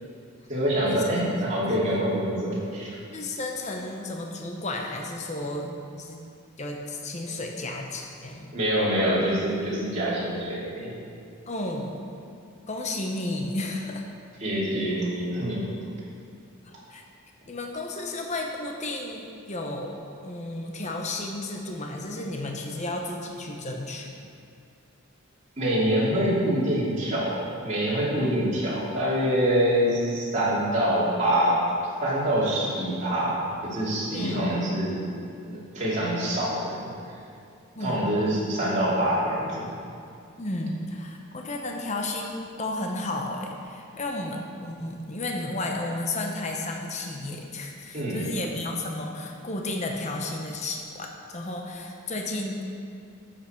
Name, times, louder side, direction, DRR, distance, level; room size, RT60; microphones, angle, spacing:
voice 1, 0.5-2.9 8.5-10.9 14.4-15.7 25.6-31.6 32.0-35.0 35.4-36.9 37.8-39.7 47.9-48.3, right 1 dB, 35° right, -8 dB, 2.8 m, -25 dB
voice 2, 3.1-6.2 6.6-8.5 11.5-12.3 12.7-14.0 16.6-17.0 17.5-24.1 34.1-34.5 37.7-38.0 40.4-52.6, left 2 dB, 30° left, 1 dB, 0.8 m, -33 dB
12.0 x 7.8 x 4.5 m, 2.4 s
head